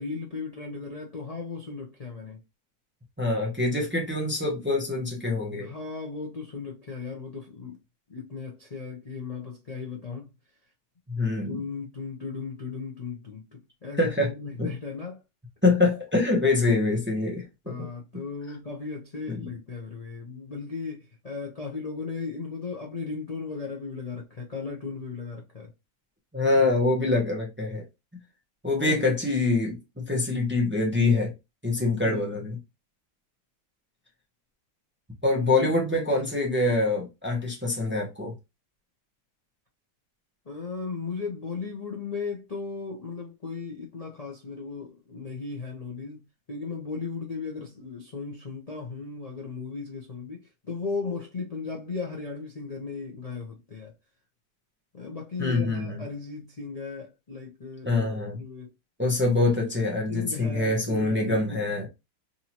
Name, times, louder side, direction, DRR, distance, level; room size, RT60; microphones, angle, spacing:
voice 1, 0.0-2.4 5.6-7.8 8.1-10.3 11.5-15.2 17.7-25.7 28.8-29.1 32.0-32.2 40.5-50.4 50.7-53.9 54.9-58.7 60.1-61.6, left 4 dB, 55° left, 0.4 m, -36 dB
voice 2, 3.2-5.7 11.1-11.6 14.0-14.3 14.6-14.7 15.6-17.9 19.3-19.4 26.3-27.8 28.6-31.3 31.6-32.6 35.2-38.3 55.4-56.0 57.8-58.4 59.0-61.9, left 2 dB, 10° right, 0.7 m, -25 dB
3.7 x 2.8 x 2.9 m
omnidirectional pair, 1.9 m